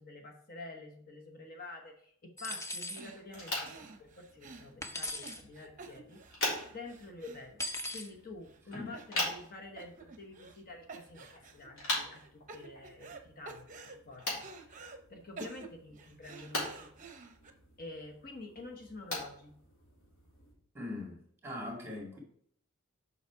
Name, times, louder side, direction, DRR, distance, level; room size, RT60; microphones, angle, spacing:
voice 1, 0.0-3.7 4.0-6.2 6.7-7.6 7.9-14.8 15.1-16.9 17.8-19.6, left 2 dB, 40° left, 2 dB, 1.1 m, -48 dB
sound 1, 2.4-3.0 4.8-5.4 7.6-8.1, left 1 dB, 15° left, 0.6 m, -38 dB
sound 2, 2.5-2.7 3.0-8.1 8.5-8.6 8.9-9.5 9.8-10.6 10.9-11.7 12.1-13.2 13.4-15.0 15.4-17.5, right 4 dB, 35° right, 0.8 m, -50 dB
sound 3, 3.2-20.5, left 1 dB, 65° left, 3.7 m, -42 dB
voice 2, 20.7-22.2, left 2 dB, 10° right, 0 dB, 2.2 m, -41 dB
7.1 x 5.7 x 4.7 m, 0.64 s
head